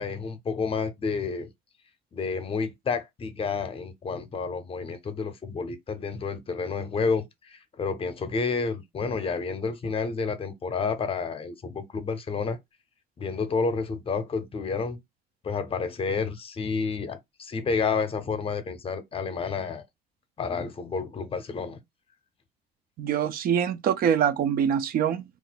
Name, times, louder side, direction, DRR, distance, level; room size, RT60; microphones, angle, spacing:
voice 1, 0.0-1.5 2.1-12.6 13.2-15.0 15.4-19.8 20.4-21.8, left 5 dB, 35° left, 0.6 m, -30 dB
voice 2, 23.0-25.2, right 8 dB, 60° right, 0.5 m, -24 dB
2.4 x 2.1 x 3.9 m
cardioid pair, 110°, 17 cm